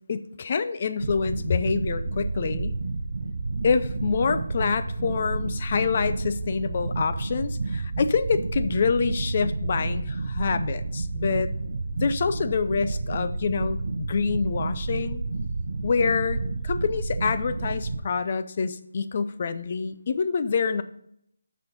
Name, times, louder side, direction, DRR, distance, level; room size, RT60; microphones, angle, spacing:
voice 1, 0.1-2.8 3.6-11.5 12.0-15.2 15.8-20.8, left 5 dB, 30° left, 11 dB, 0.5 m, -26 dB
sound 1, 1.0-18.0, right 3 dB, 50° right, 0.8 m, -30 dB
6.8 x 6.3 x 5.3 m, 0.72 s
figure-of-eight pair, 170°, 0 cm